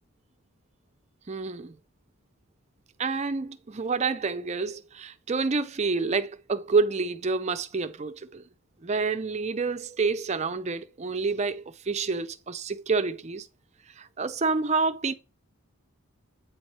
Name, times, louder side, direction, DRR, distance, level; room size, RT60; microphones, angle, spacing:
voice 1, 1.3-1.8 3.0-8.4 8.8-13.5 14.0-15.1, right 4 dB, 30° right, 0.4 m, -28 dB
8.6 x 3.1 x 5.4 m
head